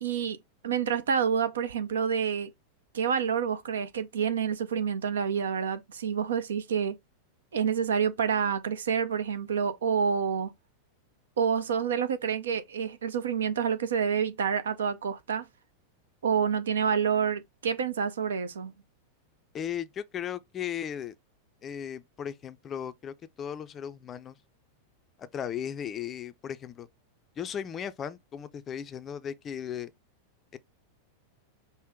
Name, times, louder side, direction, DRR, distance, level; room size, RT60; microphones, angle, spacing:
voice 1, 0.0-0.4 0.6-2.5 2.9-6.9 7.5-10.5 11.4-15.4 16.2-18.7, right 7 dB, 65° right, 0.5 m, -28 dB
voice 2, 19.5-21.2 21.6-24.4 25.3-26.9 27.4-29.9 30.5-30.6, left 9 dB, 25° left, 0.4 m, -36 dB
5.4 x 2.1 x 3.5 m
figure-of-eight pair, 90°, 0 cm